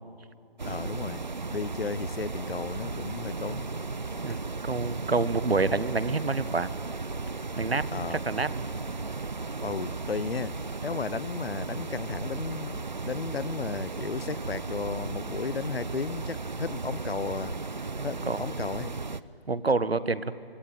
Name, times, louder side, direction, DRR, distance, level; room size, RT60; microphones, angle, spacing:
voice 1, 0.6-3.6 4.3-4.4 7.9-8.2 9.6-10.6 10.8-17.6 18.0-18.9, left 5 dB, 70° left, 20 dB, 0.8 m, -34 dB
sound 1, 0.6-19.2, right 3 dB, 45° right, 0.7 m, -35 dB
voice 2, 4.2-6.7 7.6-8.6 18.0-18.4 19.5-20.2, right 3 dB, 80° right, 15 dB, 1.3 m, -28 dB
25.5 x 24.0 x 9.2 m, 2.3 s
figure-of-eight pair, 170°, 30 cm